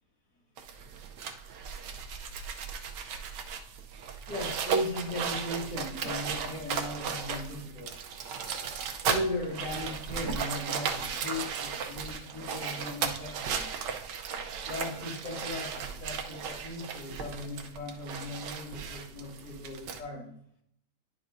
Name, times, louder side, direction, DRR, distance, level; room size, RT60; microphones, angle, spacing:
sound 1, 0.6-20.0, right 6 dB, 80° right, 1.4 m, -36 dB
voice 1, 4.3-7.9 9.0-13.6 14.6-20.3, left 1 dB, 75° left, -3 dB, 3.0 m, -37 dB
10.0 x 5.7 x 2.6 m, 0.68 s
omnidirectional pair, 1.9 m